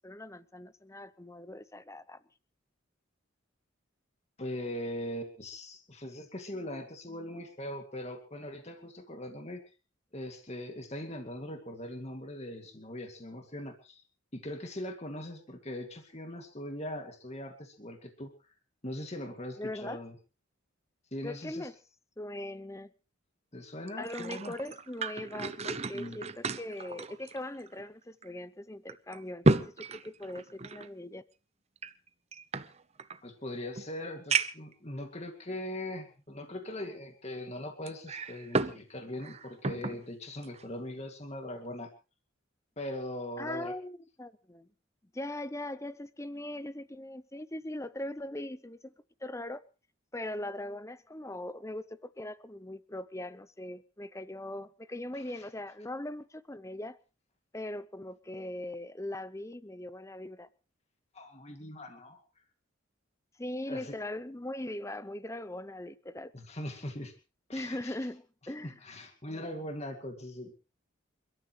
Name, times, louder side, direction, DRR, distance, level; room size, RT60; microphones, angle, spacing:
voice 1, 0.0-2.2 19.6-20.0 21.2-21.7 22.2-22.9 24.0-31.2 43.4-44.7 45.1-48.9 49.2-49.6 50.1-57.0 57.5-60.5 63.4-66.3 67.5-68.8, left 1 dB, 15° left, 0.8 m, -40 dB
voice 2, 4.4-9.6 10.1-14.0 14.3-18.3 18.8-20.1 21.1-21.7 23.5-24.5 25.9-26.2 33.2-41.9 42.8-43.7 55.1-55.5 61.1-62.2 63.7-63.9 66.3-67.1 67.5-68.0 68.6-70.5, left 1 dB, 30° left, 2.3 m, -40 dB
sound 1, 23.9-27.9 28.2-28.3 28.9-30.9 31.8-33.2 33.8-33.9 34.3-34.7 35.5-35.6 37.9-38.8 39.1-40.0 40.4-40.6, right 3 dB, 30° right, 0.8 m, -32 dB
28.5 x 13.5 x 3.2 m
head